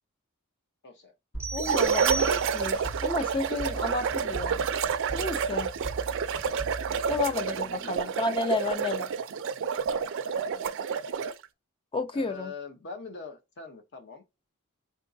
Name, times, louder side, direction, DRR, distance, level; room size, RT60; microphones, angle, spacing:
voice 1, 0.8-1.1 6.3-6.6 6.9-8.1 8.8-8.9 10.4-10.7 12.1-14.2, left 4 dB, 50° left, 0.8 m, -44 dB
sound 1, 1.3-8.0, right 2 dB, 80° left, 2.7 m, -40 dB
sound 2, 1.4-2.9, right 3 dB, 15° right, 0.6 m, -36 dB
voice 2, 1.5-4.6 5.1-5.7 7.1-9.1 11.9-12.5, left 3 dB, 25° left, 0.4 m, -31 dB
sound 3, 1.6-11.5, right 6 dB, 60° right, 0.4 m, -29 dB
3.8 x 3.6 x 2.6 m
head